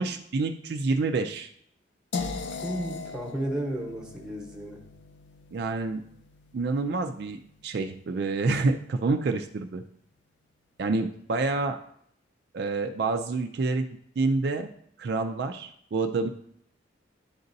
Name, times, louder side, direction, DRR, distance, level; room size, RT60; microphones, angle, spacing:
voice 1, 0.0-1.5 5.5-6.0 6.5-9.8 10.8-11.8 12.5-13.9 14.2-14.7 15.0-16.3, right 3 dB, 60° right, 5 dB, 0.4 m, -28 dB
sound 1, 2.1-8.0, left 4 dB, 70° left, 0.5 m, -39 dB
voice 2, 2.5-4.8, right 1 dB, 5° right, -1 dB, 0.9 m, -33 dB
10.5 x 4.0 x 2.6 m, 0.68 s
head